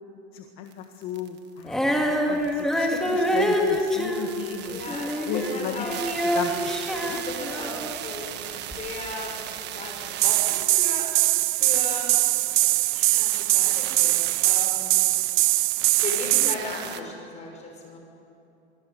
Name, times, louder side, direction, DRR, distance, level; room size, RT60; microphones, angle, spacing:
voice 1, 0.3-5.0 5.2-5.8 6.3-6.7 7.1-7.2, left 8 dB, 35° left, 4 dB, 1.7 m, -34 dB
sound 1, 0.7-0.8 1.0-17.0, right 11 dB, 30° right, 1.4 m, -38 dB
Female singing, 1.6-8.0 8.7-8.8, equal, ahead, 2.4 m, -26 dB
voice 2, 4.6-5.9 6.9-11.1 11.6-12.1 12.9-14.1 14.4-15.1 16.0-18.0, left 3 dB, 20° left, 1 dB, 6.1 m, -36 dB
sound 2, 10.2-16.6, right 22 dB, 45° right, 0.6 m, -22 dB
24.5 x 23.5 x 8.1 m, 2.7 s
supercardioid pair, 150°, 34 cm